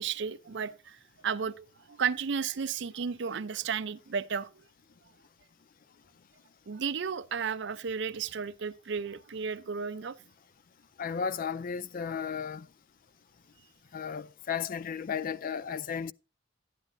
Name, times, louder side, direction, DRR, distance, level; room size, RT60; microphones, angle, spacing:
voice 1, 0.0-4.5 6.7-10.2, right 6 dB, 65° right, 0.5 m, -33 dB
voice 2, 11.0-12.7 13.9-16.1, left 6 dB, 45° left, 0.4 m, -34 dB
11.5 x 9.9 x 2.6 m
head